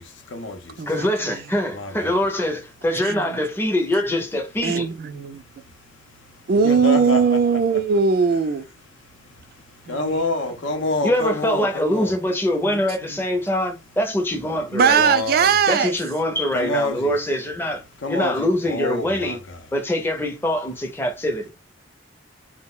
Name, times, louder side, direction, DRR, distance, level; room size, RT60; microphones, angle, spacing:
voice 1, 0.0-0.8 1.7-2.2 6.6-7.4 9.9-12.1 14.9-15.5 16.5-17.1 18.0-19.4, left 2 dB, 80° left, 0.6 m, -27 dB
voice 2, 0.9-4.9 11.0-15.0 15.7-17.8 18.1-19.4 19.7-21.5, left 1 dB, 10° left, 0.5 m, -23 dB
voice 3, 4.6-5.4 6.5-8.7 9.9-10.2 10.7-10.8 12.7-12.8 14.7-15.9, right 5 dB, 50° right, 0.3 m, -19 dB
2.3 x 2.1 x 3.6 m
head